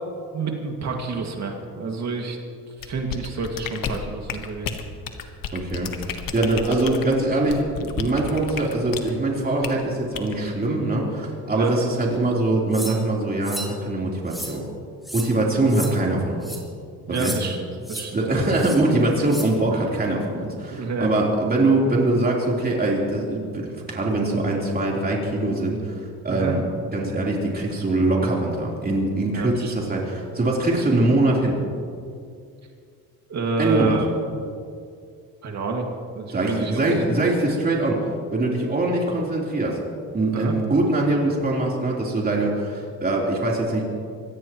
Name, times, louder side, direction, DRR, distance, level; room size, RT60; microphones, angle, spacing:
voice 1, 0.3-2.4 2.8-4.7 11.5-11.7 15.3-15.4 17.1-18.4 20.7-21.1 26.3-26.5 29.3-29.7 33.3-34.1 35.4-35.9 36.2-36.8 40.3-40.5, right 3 dB, 45° right, 2 dB, 2.2 m, -28 dB
sound 1, 2.8-9.1 9.6-9.8 10.1-10.4, left 7 dB, 60° left, 1.5 m, -32 dB
voice 2, 5.5-14.6 15.1-16.5 17.1-17.3 18.1-26.6 26.9-31.6 33.6-34.0 36.3-39.8 40.1-43.8, right 2 dB, 25° right, -3 dB, 3.8 m, -23 dB
sound 2, 12.7-13.0 13.4-13.7 14.3-14.5 15.0-15.3 15.7-15.9 16.4-16.6 17.1-17.4 17.8-18.0 18.6-18.8 19.3-19.5, equal, ahead, 3.8 m, -33 dB
24.0 x 17.5 x 3.1 m, 2.3 s
cardioid pair, 120°, 37 cm